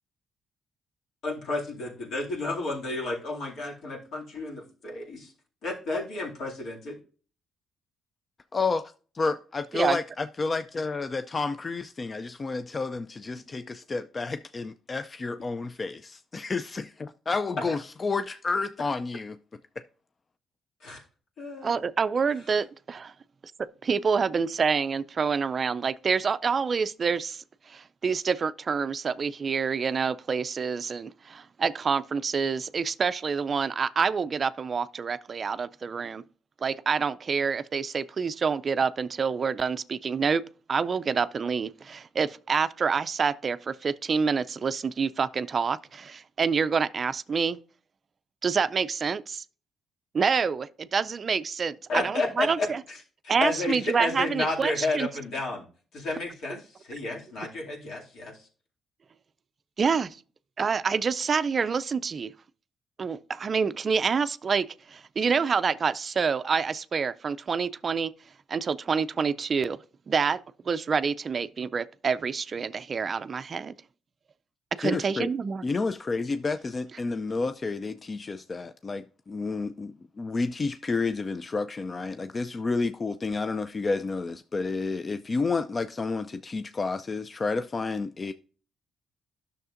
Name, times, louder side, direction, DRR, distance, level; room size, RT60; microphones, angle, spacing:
voice 1, 1.2-5.3 5.6-7.0 17.7-17.8 20.8-21.0 21.4-21.8 51.9-53.0 53.2-55.6 55.9-58.4, left 2 dB, 70° left, 2.4 m, -31 dB
voice 2, 8.5-19.4 19.8-19.9 74.8-75.3 75.6-88.3, left 4 dB, 35° left, 0.3 m, -30 dB
voice 3, 21.6-23.0 23.6-36.2 36.6-40.4 40.7-47.6 48.4-49.4 50.1-52.8 53.3-55.1 59.8-60.2 60.6-62.3 63.0-68.1 68.5-69.8 70.1-70.4 70.7-73.7 74.8-75.6, right 5 dB, 40° right, 0.3 m, -27 dB
10.5 x 6.4 x 2.5 m
cardioid pair, 90°, 0 cm